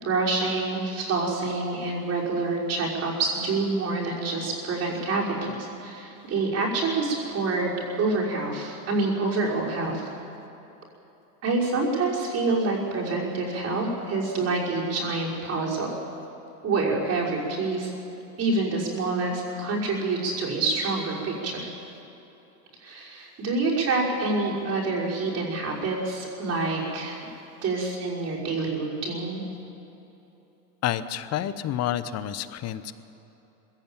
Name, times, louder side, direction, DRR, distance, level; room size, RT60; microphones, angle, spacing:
voice 1, 0.0-7.7 8.0-10.1 11.4-15.9 16.6-17.9 18.4-21.7 22.8-27.2 27.6-29.4, right 3 dB, 30° right, -3 dB, 5.7 m, -27 dB
voice 2, 30.8-32.9, left 11 dB, 35° left, 13 dB, 1.0 m, -29 dB
21.0 x 16.5 x 9.1 m, 3.0 s
supercardioid pair, 130°, 47 cm